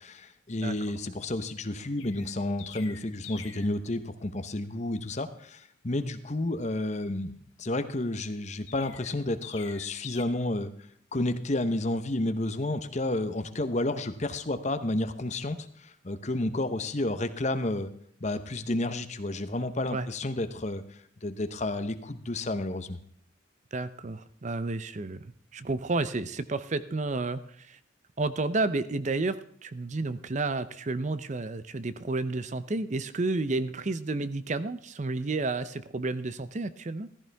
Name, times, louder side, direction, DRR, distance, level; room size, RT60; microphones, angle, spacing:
voice 1, 0.0-10.7 11.1-17.9 18.2-23.0, left 2 dB, 35° left, 10 dB, 0.9 m, -31 dB
Chirp tweet, 2.0-3.8 8.7-10.2, left 9 dB, 90° left, 1.5 m, -46 dB
voice 2, 23.7-25.3 25.5-27.8 28.2-37.1, right 3 dB, 35° right, 14 dB, 0.6 m, -31 dB
15.0 x 14.0 x 3.4 m, 0.62 s
head